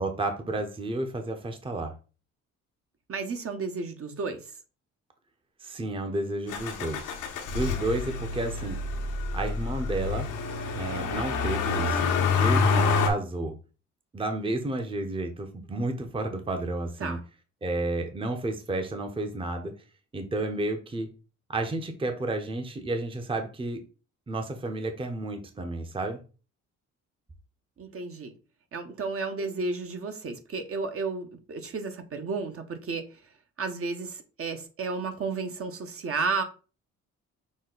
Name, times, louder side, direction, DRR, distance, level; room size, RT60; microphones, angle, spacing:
voice 1, 0.0-1.9 5.6-7.2 7.5-8.8 9.3-10.3 10.8-12.1 12.3-13.5 14.1-17.2 17.6-19.7 20.1-21.1 21.5-23.8 24.3-26.2, right 2 dB, 15° right, 6 dB, 0.7 m, -31 dB
voice 2, 3.1-4.4 17.0-17.2 27.8-28.3 28.7-33.1 33.6-36.4, right 4 dB, 45° right, 6 dB, 0.9 m, -32 dB
Motor vehicle (road), 6.5-13.1, left 4 dB, 90° left, 1.0 m, -27 dB
6.2 x 2.2 x 3.9 m, 0.35 s
cardioid pair, 90°, 30 cm